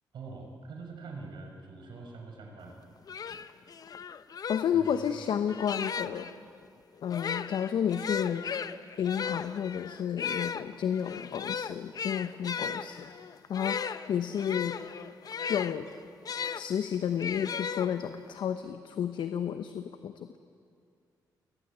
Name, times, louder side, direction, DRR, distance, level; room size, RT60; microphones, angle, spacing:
voice 1, 0.1-2.8 4.7-4.9, right 4 dB, 75° right, 2 dB, 6.1 m, -44 dB
sound 1, 2.7-2.8 3.1-6.3 7.0-16.6 17.2-18.3, left 6 dB, 55° left, 0.9 m, -36 dB
voice 2, 4.5-6.3 7.0-8.4 9.0-13.1 13.5-13.8 14.1-14.8 15.5-15.9 16.5-20.4, left 8 dB, 75° left, 9 dB, 1.0 m, -31 dB
30.0 x 20.0 x 9.2 m, 2.4 s
cardioid pair, 90°, 8 cm